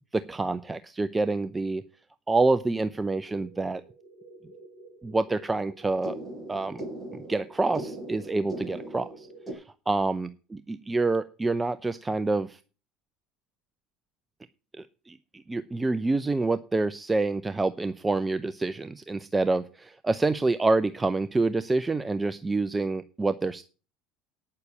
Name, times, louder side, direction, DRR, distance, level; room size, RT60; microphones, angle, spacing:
voice 1, 0.1-1.8 2.3-3.8 5.0-6.2 6.5-6.8 7.1-10.3 10.7-12.6 14.8-23.6, right 3 dB, 15° right, 13 dB, 0.7 m, -27 dB
sound 1, 3.1-9.5, right 1 dB, 10° left, 6.2 m, -41 dB
9.6 x 6.8 x 8.4 m, 0.35 s
hypercardioid pair, 75°, 0 cm